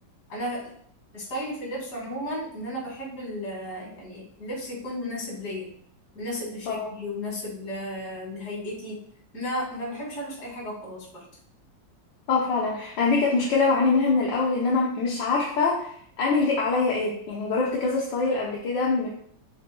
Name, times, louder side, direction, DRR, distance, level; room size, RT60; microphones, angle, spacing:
voice 1, 0.3-0.7 1.1-5.7 6.1-9.0 9.3-11.1, equal, 55° left, -3 dB, 2.8 m, -34 dB
voice 2, 12.3-15.9 16.2-19.1, left 4 dB, 75° left, -3 dB, 1.6 m, -24 dB
7.2 x 5.9 x 2.2 m, 0.64 s
omnidirectional pair, 2.1 m